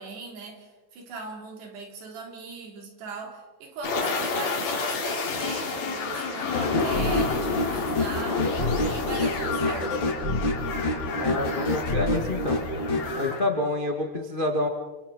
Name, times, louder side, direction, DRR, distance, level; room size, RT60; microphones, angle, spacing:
voice 1, 0.0-10.1, right 3 dB, 80° right, 2 dB, 5.2 m, -39 dB
sound 1, 3.8-13.4, left 4 dB, 65° left, 4.5 m, -30 dB
sound 2, 6.5-13.1, left 1 dB, 30° left, 3.2 m, -28 dB
voice 2, 11.2-12.7 13.2-14.7, left 2 dB, 50° left, 2 dB, 0.6 m, -28 dB
29.5 x 28.0 x 4.1 m, 1.2 s
omnidirectional pair, 4.8 m